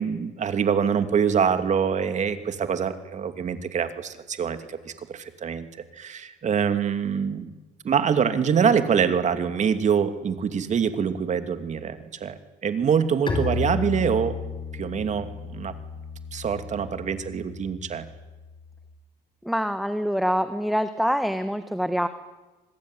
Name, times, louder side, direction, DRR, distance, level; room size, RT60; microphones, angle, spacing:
voice 1, 0.0-5.7 5.9-7.5 7.8-14.4 14.7-15.7 16.3-18.1, right 7 dB, 45° right, 9 dB, 2.7 m, -25 dB
Bowed string instrument, 13.3-18.9, left 4 dB, 30° left, 5.7 m, -33 dB
voice 2, 19.4-22.1, equal, ahead, 10 dB, 1.4 m, -25 dB
25.5 x 20.5 x 10.0 m, 1.1 s
cardioid pair, 110°, 17 cm